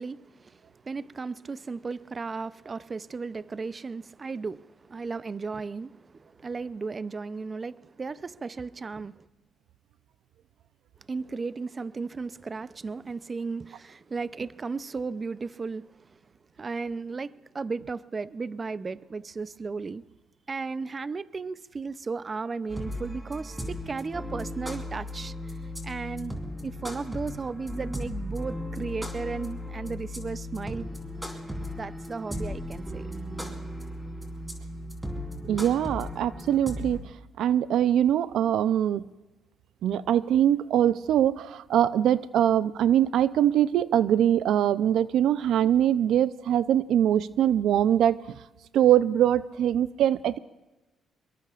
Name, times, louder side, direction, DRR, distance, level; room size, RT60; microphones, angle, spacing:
voice 1, 0.0-9.3 11.1-16.2 16.6-20.0 20.5-30.9 31.8-33.1 35.4-35.6, right 4 dB, 35° right, 0.5 m, -35 dB
sound 1, 22.7-37.0, left 1 dB, 10° right, 3.6 m, -36 dB
voice 2, 35.5-39.1 39.8-48.2 48.7-50.4, right 10 dB, 80° right, 0.5 m, -23 dB
25.0 x 22.0 x 2.5 m
cardioid pair, 90°, 0 cm